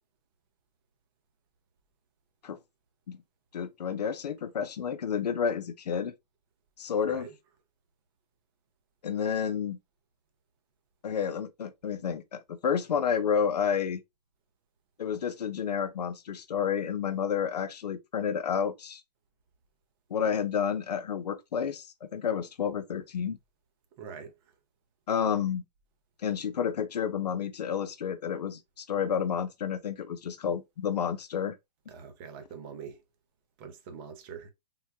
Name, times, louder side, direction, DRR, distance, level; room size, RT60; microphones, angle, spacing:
voice 1, 3.5-6.1 6.8-7.3 9.0-9.8 11.0-14.0 15.0-19.0 20.1-23.4 25.1-25.6 26.2-31.6, left 7 dB, 75° left, 0.6 m, -30 dB
voice 2, 7.0-7.4 24.0-24.4 31.9-33.0 33.6-34.5, right 6 dB, 35° right, 0.7 m, -44 dB
3.7 x 2.1 x 2.8 m
hypercardioid pair, 135°, 21 cm